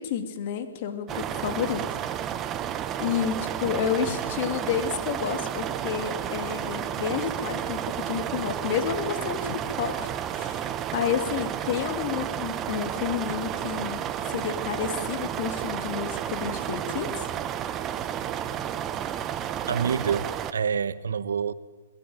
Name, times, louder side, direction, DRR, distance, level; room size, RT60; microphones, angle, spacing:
voice 1, 0.0-2.3 3.0-10.1 10.3-17.3, left 8 dB, 45° left, 2.6 m, -30 dB
sound 1, 1.1-20.5, right 10 dB, 25° right, 1.0 m, -31 dB
voice 2, 19.7-21.5, right 6 dB, 75° right, 0.9 m, -27 dB
21.0 x 15.5 x 9.0 m
hypercardioid pair, 135°, 0 cm